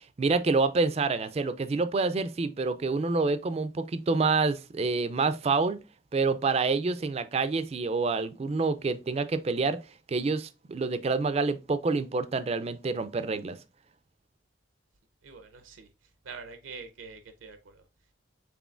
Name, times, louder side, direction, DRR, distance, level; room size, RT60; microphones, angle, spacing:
voice 1, 0.0-5.8 6.1-9.8 10.1-13.6, right 3 dB, 30° right, 0.3 m, -27 dB
voice 2, 15.2-17.9, right 5 dB, 75° right, 0.6 m, -45 dB
6.0 x 3.7 x 2.4 m
head